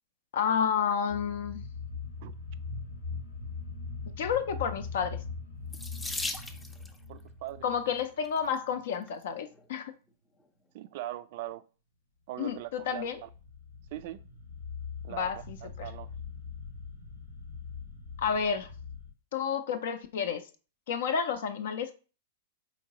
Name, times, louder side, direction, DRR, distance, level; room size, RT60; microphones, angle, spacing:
voice 1, 0.3-1.6 4.2-5.2 7.6-9.9 12.4-13.2 15.1-15.9 18.2-18.7 19.3-20.4 20.9-21.9, left 7 dB, 65° left, 0.4 m, -30 dB
sound 1, 1.1-8.8 12.6-19.1, left 4 dB, 85° left, 0.9 m, -42 dB
Water tap faucet / Sink (filling or washing), 5.7-7.0 8.0-8.4 9.1-9.2 9.5-9.6, left 2 dB, 10° left, 0.5 m, -37 dB
voice 2, 7.1-7.6 10.7-11.6 12.3-13.3 13.9-14.2 15.0-15.3 15.6-16.1, right 14 dB, 55° right, 0.3 m, -40 dB
4.4 x 3.0 x 2.8 m
hypercardioid pair, 100°, 0 cm